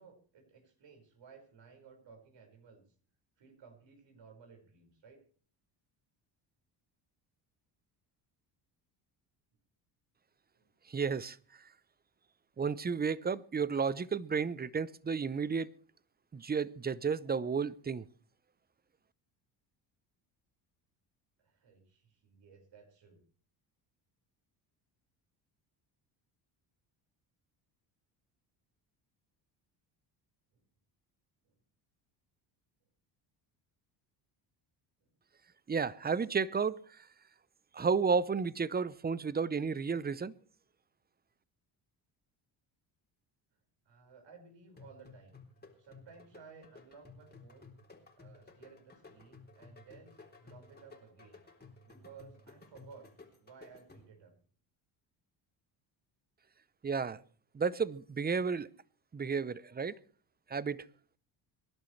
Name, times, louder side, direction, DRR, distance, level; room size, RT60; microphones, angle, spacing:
voice 1, 0.0-2.8 3.4-5.2 10.5-10.7 21.4-23.2 30.5-30.6 31.4-31.6 35.0-35.1 43.8-45.4 45.8-47.7 48.1-51.4 51.8-54.3, right 5 dB, 60° right, 5.3 m, -57 dB
voice 2, 10.9-11.4 12.6-15.7 16.3-18.0 35.7-37.1 37.7-40.3 56.8-57.2 57.5-58.7 59.1-59.9 60.5-60.9, right 5 dB, 20° right, 0.7 m, -32 dB
sound 1, 44.8-54.3, left 3 dB, 20° left, 3.7 m, -56 dB
25.0 x 11.5 x 3.3 m
supercardioid pair, 75°, 50 cm